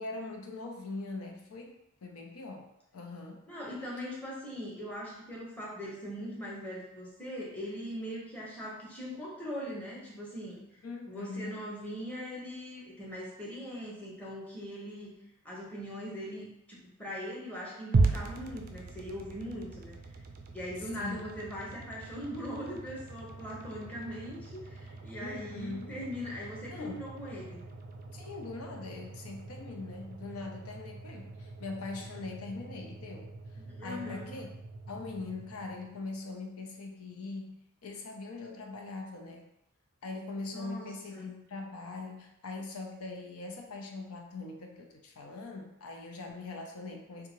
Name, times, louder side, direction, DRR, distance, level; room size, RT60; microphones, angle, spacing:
voice 1, 0.0-3.5 10.8-11.7 21.0-21.2 25.2-26.0 26.7-27.1 28.1-33.3 33.8-34.5 34.9-39.5 40.0-47.3, left 3 dB, 90° left, 2 dB, 0.6 m, -42 dB
voice 2, 3.5-10.6 11.1-15.2 15.4-19.9 20.5-27.6 33.6-34.3 40.5-41.3, equal, 5° left, -6 dB, 0.9 m, -40 dB
sound 1, 17.9-36.2, right 3 dB, 40° right, 0.3 m, -38 dB
3.6 x 2.3 x 3.0 m, 0.82 s
head